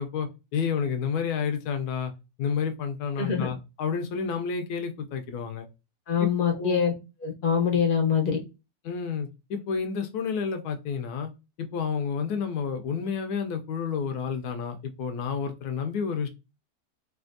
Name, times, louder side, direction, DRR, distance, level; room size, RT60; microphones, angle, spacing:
voice 1, 0.0-2.1 2.4-5.7 6.2-6.8 8.8-11.3 11.6-16.3, left 6 dB, 75° left, 1.0 m, -30 dB
voice 2, 3.2-3.5 6.1-6.9 7.2-8.4, left 7 dB, 45° left, 0.7 m, -24 dB
3.3 x 2.5 x 2.5 m
omnidirectional pair, 1.8 m